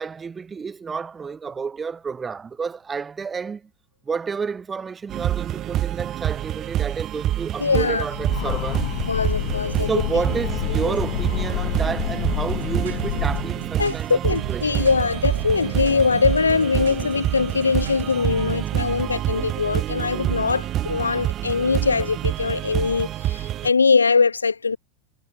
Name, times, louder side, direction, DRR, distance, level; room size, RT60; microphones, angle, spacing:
voice 1, 0.0-3.7 4.1-8.9 9.9-14.9 18.3-19.1, right 5 dB, 15° right, 0.7 m, -30 dB
sound 1, 5.1-23.7, right 12 dB, 30° right, 0.3 m, -27 dB
voice 2, 7.6-8.0 9.1-9.9 10.8-10.9 13.8-24.8, left 5 dB, 75° left, 0.8 m, -22 dB
Train, 8.0-13.7, left 25 dB, 50° left, 0.6 m, -29 dB
sound 2, 12.4-18.1, right 9 dB, 65° right, 6.1 m, -38 dB
figure-of-eight pair, 90°, 0 cm